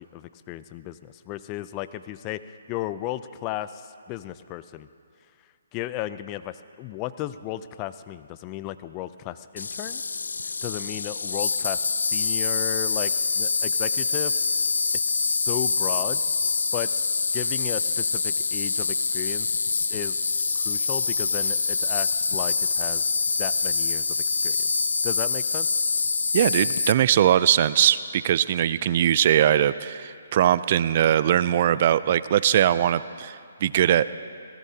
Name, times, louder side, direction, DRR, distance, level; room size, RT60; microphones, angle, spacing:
voice 1, 0.0-2.4 2.7-4.9 5.7-10.0 10.6-14.3 15.1-16.4 16.7-19.5 19.9-23.1 23.4-24.2 24.4-24.7 25.0-25.7, left 14 dB, 25° left, 13 dB, 0.4 m, -35 dB
Insect, 9.6-26.9, left 4 dB, 80° left, 0.5 m, -25 dB
voice 2, 26.3-33.4 33.6-34.1, right 10 dB, 45° right, 16 dB, 0.4 m, -21 dB
25.0 x 18.0 x 2.8 m, 2.3 s
hypercardioid pair, 145°, 0 cm